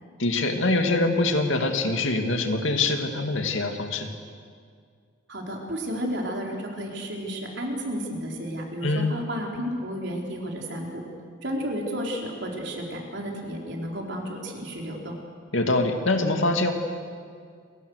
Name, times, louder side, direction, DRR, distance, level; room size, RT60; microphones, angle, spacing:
voice 1, 0.2-4.1 8.8-9.1 15.5-16.7, left 2 dB, 70° left, 5 dB, 2.4 m, -24 dB
voice 2, 5.3-11.0 11.4-15.2, equal, 55° right, 0 dB, 4.5 m, -32 dB
29.0 x 23.0 x 6.6 m, 2.1 s
head